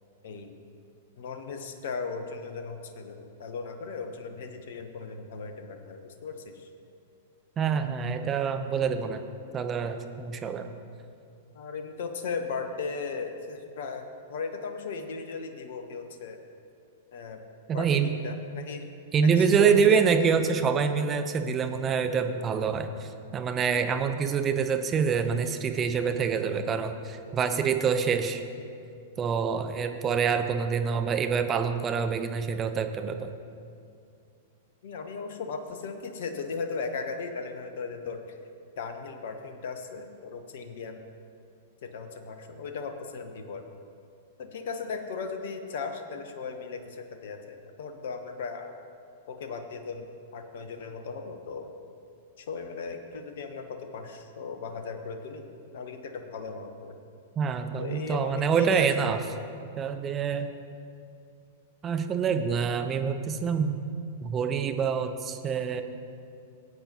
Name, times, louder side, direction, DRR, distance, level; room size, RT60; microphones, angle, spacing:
voice 1, 0.2-0.5 1.2-6.7 11.5-16.4 17.1-17.4 17.7-18.9 19.2-20.6 34.8-38.4 38.8-41.0 41.8-43.6 44.4-48.7 49.3-51.7 52.4-57.0 57.8-59.2, left 4 dB, 55° left, 6 dB, 0.9 m, -37 dB
voice 2, 7.6-9.2 9.5-10.7 17.7-18.2 19.1-28.4 29.2-33.3 57.4-59.2 59.8-60.5 61.8-63.8 64.2-65.8, right 6 dB, 25° right, 7 dB, 0.6 m, -26 dB
17.5 x 8.6 x 2.9 m, 2.5 s
figure-of-eight pair, 100°, 0 cm